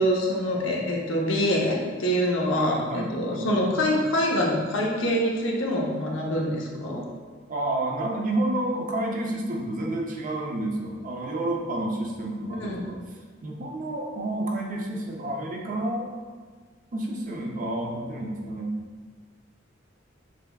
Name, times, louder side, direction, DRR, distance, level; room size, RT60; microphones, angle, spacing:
voice 1, 0.0-7.0 12.6-12.8, equal, 75° left, -2 dB, 0.8 m, -25 dB
voice 2, 2.5-3.5 7.5-13.0 13.4-16.1 16.9-18.7, right 1 dB, 40° right, 0 dB, 0.6 m, -30 dB
6.0 x 3.4 x 2.3 m, 1.5 s
head